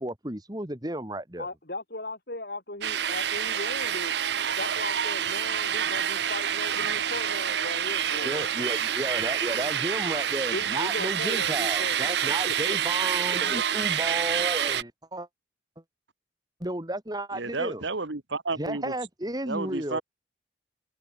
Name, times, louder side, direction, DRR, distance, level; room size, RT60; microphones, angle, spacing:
voice 1, 0.0-1.5 8.2-15.3 16.6-17.8 18.6-20.0, right 1 dB, 20° right, 2.6 m, -33 dB
voice 2, 1.4-4.1 4.6-8.5 10.5-12.8 13.3-13.6, left 2 dB, 55° left, 4.5 m, -38 dB
sound 1, 2.8-14.8, right 9 dB, 65° right, 0.7 m, -27 dB
voice 3, 17.3-18.9 19.4-20.0, right 3 dB, 80° right, 1.7 m, -32 dB
head